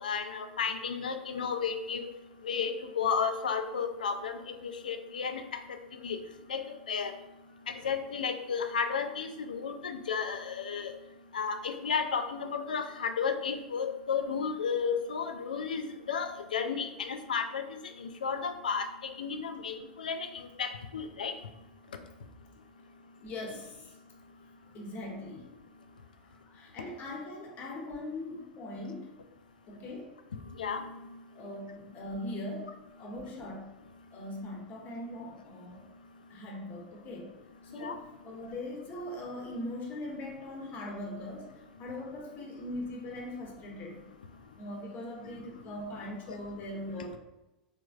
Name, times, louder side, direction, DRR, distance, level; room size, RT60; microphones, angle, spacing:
voice 1, 0.0-2.1 2.4-5.4 6.0-6.2 6.5-7.1 7.7-10.9 11.3-17.6 18.0-21.3 30.6-30.9 37.8-37.9, left 6 dB, 80° left, 7 dB, 0.3 m, -33 dB
voice 2, 23.2-24.0 24.7-25.5 26.2-29.1 29.7-30.1 31.3-33.7 34.1-35.8 36.3-37.3 37.7-44.1 44.6-47.2, left 1 dB, 40° left, 0 dB, 0.9 m, -40 dB
3.3 x 3.1 x 2.3 m, 0.98 s
figure-of-eight pair, 90°, 5 cm